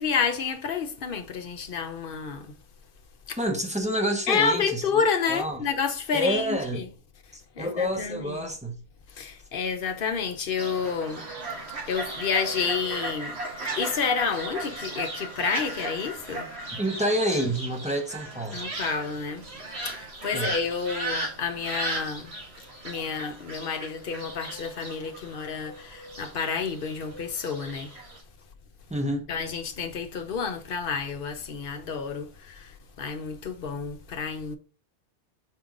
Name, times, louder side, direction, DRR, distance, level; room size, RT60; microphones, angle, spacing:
voice 1, 0.0-2.5 3.3-3.4 4.3-6.9 7.6-8.5 9.1-11.2 11.9-13.4 13.7-16.5 18.5-19.5 19.8-22.3 22.8-27.9 29.3-34.6, left 6 dB, 55° left, 0.9 m, -29 dB
voice 2, 3.4-4.8 5.3-5.6 6.1-6.8 7.3-8.7 16.7-18.6 20.3-20.5 28.9-29.3, equal, 5° right, 0.8 m, -28 dB
Fowl, 10.6-28.2, right 2 dB, 60° right, 1.9 m, -36 dB
5.5 x 4.6 x 3.8 m
omnidirectional pair, 1.2 m